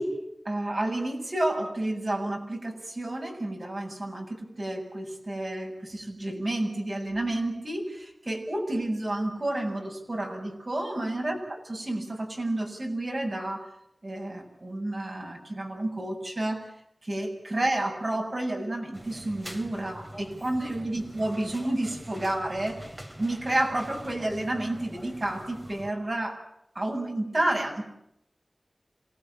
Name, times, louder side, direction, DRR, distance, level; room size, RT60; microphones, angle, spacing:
voice 1, 0.0-13.7 14.0-16.7 17.0-22.8 23.2-26.4 26.7-27.8, right 1 dB, 55° right, 1 dB, 7.8 m, -30 dB
sound 1, 18.9-25.9, equal, 20° right, 3.3 m, -45 dB
27.0 x 19.0 x 9.0 m, 0.78 s
wide cardioid pair, 50°, 0 cm